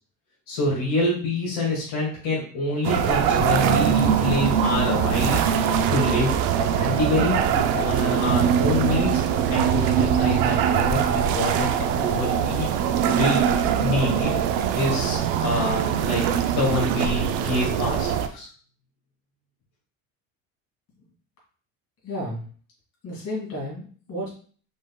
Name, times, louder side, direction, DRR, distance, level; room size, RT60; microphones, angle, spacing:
voice 1, 0.5-5.4 5.9-6.3 6.6-9.2 9.5-12.7 13.0-14.4 14.7-16.2 16.5-18.5, left 2 dB, 65° left, -5 dB, 2.0 m, -26 dB
sound 1, 2.8-18.3, right 8 dB, 80° right, 0.6 m, -22 dB
voice 2, 22.0-22.4 23.0-24.3, left 1 dB, 45° left, -4 dB, 2.2 m, -32 dB
5.2 x 3.9 x 2.2 m, 0.43 s
cardioid pair, 180°, 35 cm